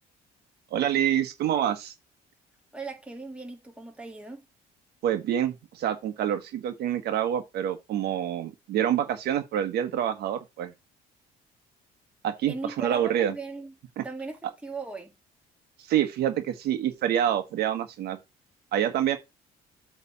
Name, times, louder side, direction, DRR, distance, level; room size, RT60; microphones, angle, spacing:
voice 1, 0.7-1.9 5.0-10.7 12.2-13.4 14.0-14.1 15.8-18.2 18.7-19.2, right 10 dB, 70° right, 1.4 m, -27 dB
voice 2, 2.7-4.4 12.5-13.7 14.0-15.1, right 3 dB, 5° right, 1.9 m, -38 dB
8.3 x 3.5 x 5.6 m
cardioid pair, 110°, 17 cm